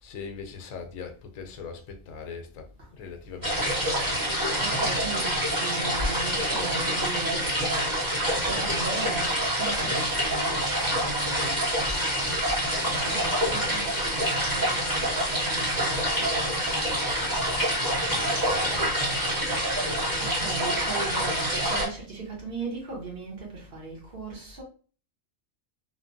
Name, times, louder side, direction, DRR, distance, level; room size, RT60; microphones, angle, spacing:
voice 1, 0.0-4.3 18.0-18.9, left 5 dB, 75° left, 1.0 m, -41 dB
sound 1, 3.4-21.9, equal, 15° right, 1.1 m, -26 dB
voice 2, 4.6-18.8 19.4-24.6, right 2 dB, 45° right, 1.0 m, -39 dB
3.1 x 2.1 x 2.6 m
omnidirectional pair, 1.4 m